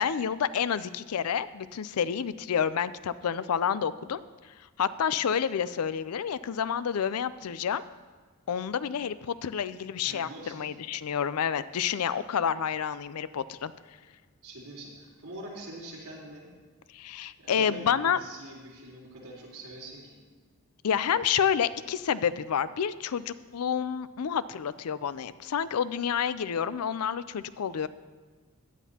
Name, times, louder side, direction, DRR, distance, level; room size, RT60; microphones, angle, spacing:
voice 1, 0.0-4.2 4.8-7.8 8.5-13.7 16.9-18.2 20.8-27.9, left 8 dB, 85° left, 15 dB, 0.4 m, -29 dB
voice 2, 10.0-10.7 14.4-16.5 17.4-20.1, right 1 dB, 70° right, -5 dB, 4.1 m, -44 dB
16.5 x 11.0 x 2.9 m, 1.4 s
head